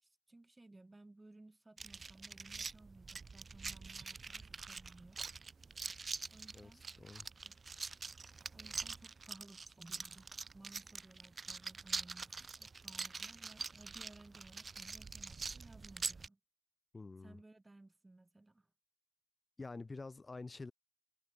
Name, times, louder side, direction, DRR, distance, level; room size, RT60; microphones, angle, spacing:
voice 1, 0.0-5.2 6.3-6.8 7.4-7.6 8.5-16.4 17.2-18.7, right 2 dB, 15° right, 6.0 m, -59 dB
sound 1, 1.8-16.3, right 4 dB, 30° right, 0.8 m, -45 dB
Fire, 5.1-9.9 10.5-10.6, right 12 dB, 75° right, 8.0 m, -69 dB
voice 2, 7.0-7.3 16.9-17.4 19.6-20.7, left 3 dB, 25° left, 0.9 m, -47 dB
cardioid pair, 90°, 0 cm